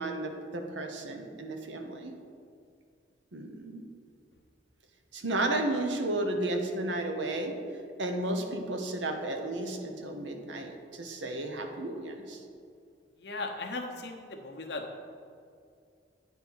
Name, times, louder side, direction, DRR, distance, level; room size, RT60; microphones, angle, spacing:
voice 1, 0.0-2.1 3.3-3.8 5.1-7.5 8.0-12.4, right 2 dB, 85° right, 4 dB, 1.0 m, -33 dB
voice 2, 13.2-14.8, left 3 dB, 65° left, 2 dB, 0.9 m, -37 dB
9.6 x 4.5 x 5.5 m, 2.3 s
head